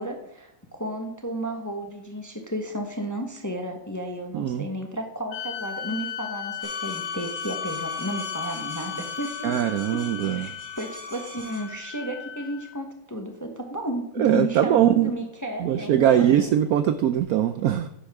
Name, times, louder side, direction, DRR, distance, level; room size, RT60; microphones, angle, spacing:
voice 1, 0.0-16.5, right 1 dB, 15° left, 4 dB, 0.8 m, -33 dB
voice 2, 4.3-4.6 9.4-10.5 14.2-15.1 15.6-17.9, right 10 dB, 75° right, 10 dB, 0.8 m, -21 dB
sound 1, 5.3-12.8, left 7 dB, 80° left, 1.7 m, -37 dB
sound 2, 6.6-11.8, left 5 dB, 50° right, 3.9 m, -37 dB
10.0 x 9.8 x 3.6 m, 0.74 s
omnidirectional pair, 2.0 m